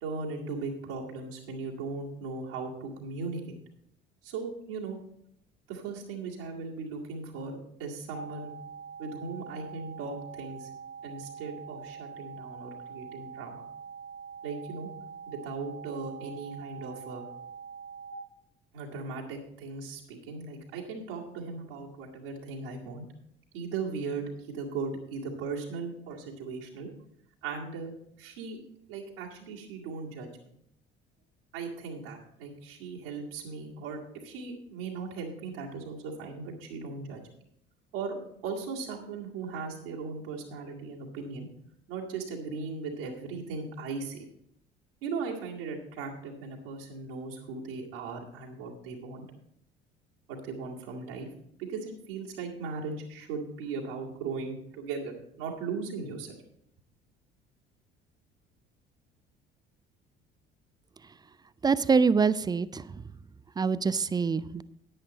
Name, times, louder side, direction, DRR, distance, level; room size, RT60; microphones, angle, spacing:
voice 1, 0.0-3.6 4.2-5.0 5.7-8.5 9.0-10.7 11.0-13.6 14.4-14.9 15.3-17.2 18.7-23.0 23.5-26.9 27.4-28.6 28.9-30.3 31.5-37.2 37.9-38.2 38.4-41.5 41.9-44.3 45.0-49.2 50.3-51.3 51.6-56.4, right 4 dB, 70° right, -3 dB, 2.1 m, -38 dB
sound 1, 8.1-18.1, right 6 dB, 90° left, 4.5 m, -44 dB
voice 2, 61.6-62.8 63.6-64.6, right 5 dB, 15° right, 17 dB, 0.3 m, -25 dB
10.0 x 9.9 x 4.1 m, 0.73 s
figure-of-eight pair, 55°, 30 cm